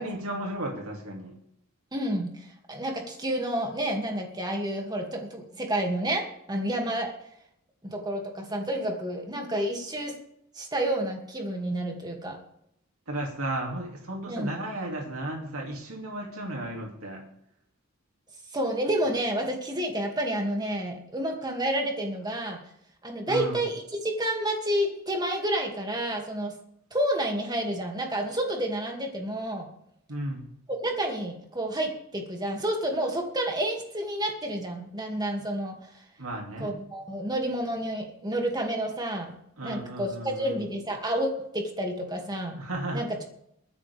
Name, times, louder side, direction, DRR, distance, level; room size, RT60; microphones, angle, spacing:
voice 1, 0.0-1.3 13.1-17.2 23.3-23.6 30.1-30.5 36.2-36.8 39.6-40.6 42.6-43.1, right 1 dB, 75° right, 0 dB, 2.6 m, -34 dB
voice 2, 1.9-7.1 7.8-10.2 10.5-12.4 14.3-14.5 18.5-22.6 23.0-26.5 26.9-29.7 30.7-35.8 36.6-39.3 39.6-42.6 42.9-43.2, right 1 dB, 20° right, 2 dB, 2.4 m, -30 dB
23.0 x 9.8 x 3.5 m, 0.75 s
head